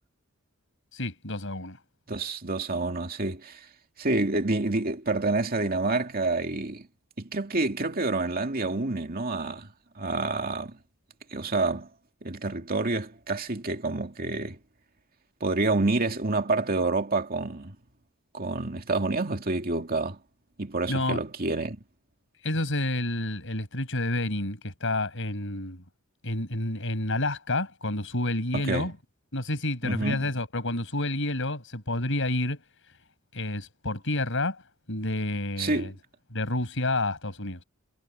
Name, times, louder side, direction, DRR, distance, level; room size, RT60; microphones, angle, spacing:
voice 1, 0.9-1.8 20.9-21.2 22.4-25.8 26.2-28.9 29.3-32.6 33.3-34.6 34.9-35.9 36.3-37.6, left 1 dB, 65° left, 7.9 m, -29 dB
voice 2, 2.1-3.7 4.0-6.9 7.2-10.8 11.3-11.9 12.2-14.6 15.4-17.8 18.3-20.2 20.6-21.8 28.5-28.9 29.8-30.2 35.6-35.9, right 2 dB, 45° right, 2.4 m, -28 dB
head